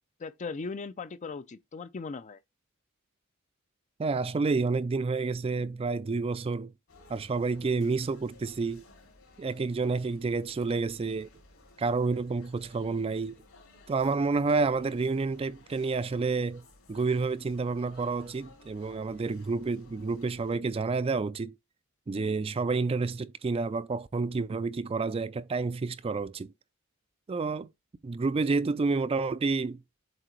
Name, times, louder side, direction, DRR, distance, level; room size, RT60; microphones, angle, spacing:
voice 1, 0.2-2.4, left 4 dB, 35° left, 0.4 m, -38 dB
voice 2, 4.0-6.7 7.1-8.8 9.4-11.3 11.8-13.3 13.9-16.6 16.9-21.5 22.1-26.5 27.3-27.7 28.0-29.8, right 4 dB, 25° right, 0.3 m, -29 dB
sound 1, 6.9-20.6, left 2 dB, 70° left, 3.1 m, -57 dB
7.7 x 2.7 x 4.5 m
head